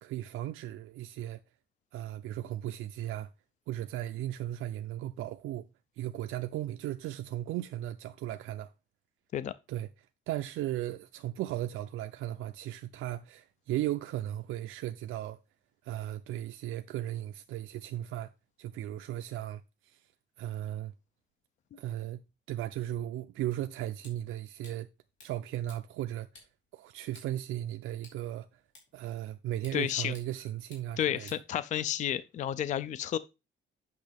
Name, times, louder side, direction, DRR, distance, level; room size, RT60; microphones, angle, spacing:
voice 1, 0.0-1.4 1.9-3.3 3.7-5.7 6.0-8.7 9.7-9.9 10.3-15.4 15.8-18.3 18.6-20.1 20.4-20.9 21.8-22.2 22.5-24.9 25.2-26.5 26.7-28.6 28.9-31.3, right 13 dB, 90° right, 0.5 m, -36 dB
sound 1, 23.5-32.1, left 3 dB, 65° left, 3.2 m, -60 dB
voice 2, 29.7-30.1 31.0-33.2, left 10 dB, 40° left, 0.4 m, -31 dB
8.4 x 6.4 x 3.4 m
cardioid pair, 180°, 20 cm